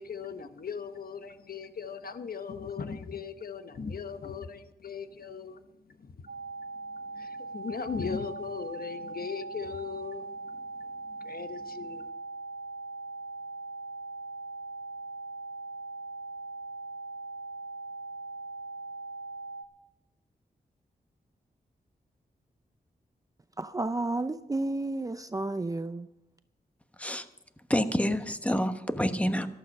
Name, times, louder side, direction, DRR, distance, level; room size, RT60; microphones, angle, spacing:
voice 1, 0.0-6.3 6.9-12.1, left 6 dB, 65° left, 1.0 m, -39 dB
sound 1, 6.3-19.6, right 3 dB, 70° right, 0.8 m, -40 dB
voice 2, 23.6-26.1, right 2 dB, 20° right, 0.5 m, -31 dB
voice 3, 27.7-29.5, equal, 10° left, 1.1 m, -27 dB
14.0 x 12.0 x 5.4 m
cardioid pair, 75°, 17 cm